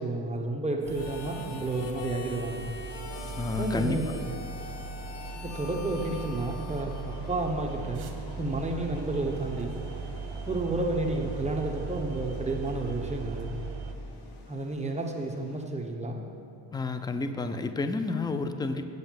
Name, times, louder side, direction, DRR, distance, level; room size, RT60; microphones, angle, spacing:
voice 1, 0.0-2.7 3.6-4.3 5.4-8.0 8.4-9.8 10.5-13.5 14.5-16.3, right 2 dB, 15° right, 1 dB, 1.0 m, -31 dB
Harmonica, 0.8-7.7, left 5 dB, 65° left, 1.0 m, -44 dB
sound 1, 0.8-13.9, right 4 dB, 55° right, 1.0 m, -39 dB
sound 2, 2.8-15.7, left 3 dB, 80° left, 1.4 m, -49 dB
voice 2, 3.4-4.2 16.7-18.9, left 3 dB, 10° left, 9 dB, 0.3 m, -30 dB
7.6 x 5.5 x 7.4 m, 2.4 s
cardioid pair, 95°, 47 cm